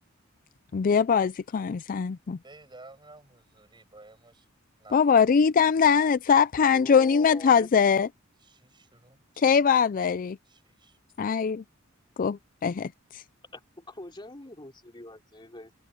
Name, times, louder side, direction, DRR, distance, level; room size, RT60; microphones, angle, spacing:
voice 1, 0.7-2.4 4.9-8.1 9.4-10.4 11.2-11.6 12.2-13.2, left 6 dB, 40° left, 0.4 m, -22 dB
voice 2, 2.4-4.5 4.8-5.3 8.4-9.2 10.4-11.0, right 2 dB, 20° right, 6.1 m, -52 dB
voice 3, 6.7-7.7 13.5-15.7, left 1 dB, 25° left, 3.3 m, -43 dB
head